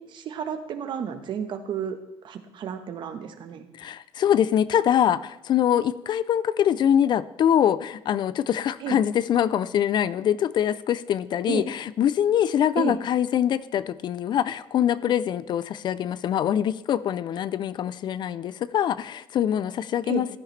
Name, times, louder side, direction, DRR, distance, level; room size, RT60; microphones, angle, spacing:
voice 1, 0.0-2.0 2.2-3.7 8.8-9.0 11.5-11.6 12.8-13.0 20.1-20.3, right 7 dB, 55° right, 8 dB, 1.2 m, -32 dB
voice 2, 3.8-20.4, left 10 dB, 50° left, 16 dB, 0.4 m, -24 dB
15.0 x 10.5 x 3.3 m, 0.85 s
cardioid pair, 130°, 10 cm